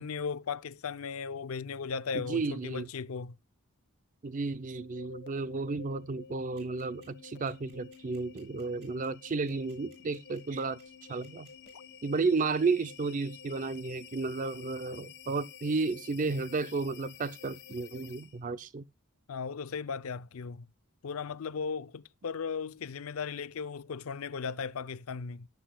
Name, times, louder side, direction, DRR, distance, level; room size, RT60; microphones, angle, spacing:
voice 1, 0.0-3.4 19.3-20.7 21.0-25.5, left 5 dB, 75° left, 0.5 m, -37 dB
voice 2, 2.1-2.9 4.2-10.8 11.1-11.5 12.0-18.8, right 4 dB, 35° right, 0.5 m, -32 dB
sound 1, 4.6-18.5, left 6 dB, 50° left, 1.1 m, -51 dB
sound 2, 6.6-11.7, right 8 dB, 50° right, 7.9 m, -61 dB
17.5 x 7.9 x 2.2 m
head